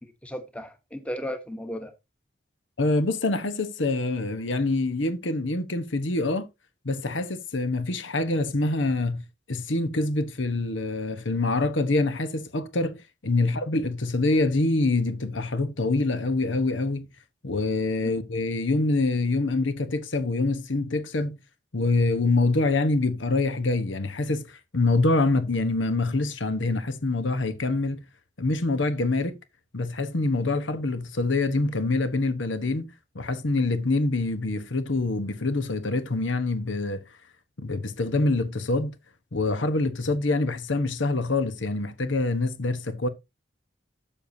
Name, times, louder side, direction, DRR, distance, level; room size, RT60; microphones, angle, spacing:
voice 1, 0.0-1.9 13.4-13.5, equal, 5° left, 1.1 m, -35 dB
voice 2, 2.8-6.5 6.8-9.2 9.5-17.1 17.4-21.4 21.7-28.0 28.4-29.4 29.7-32.9 33.1-37.0 37.6-38.9 39.3-43.1, left 2 dB, 80° left, 1.1 m, -25 dB
12.5 x 6.7 x 2.7 m
head